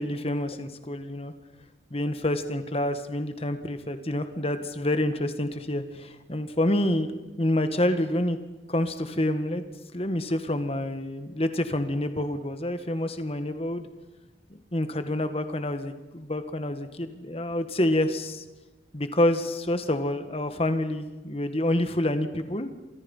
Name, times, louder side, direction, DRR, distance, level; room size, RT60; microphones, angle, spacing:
voice 1, 0.0-1.3 1.9-8.4 8.7-9.6 9.9-13.9 14.5-18.4 18.9-22.7, left 1 dB, 35° left, 9 dB, 1.7 m, -28 dB
29.5 x 26.0 x 5.6 m, 1.1 s
head